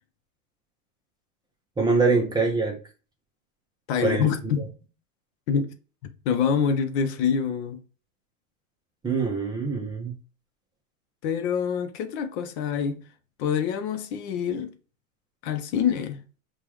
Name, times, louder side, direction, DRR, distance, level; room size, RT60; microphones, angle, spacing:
voice 1, 1.8-2.8 4.0-4.3 9.0-10.1, right 4 dB, 10° right, 0.7 m, -23 dB
voice 2, 3.9-4.7 5.5-5.8 6.3-7.8 11.2-13.0 13.4-14.7 15.4-16.2, left 7 dB, 55° left, 0.7 m, -26 dB
6.7 x 2.4 x 3.0 m
supercardioid pair, 135°, 40 cm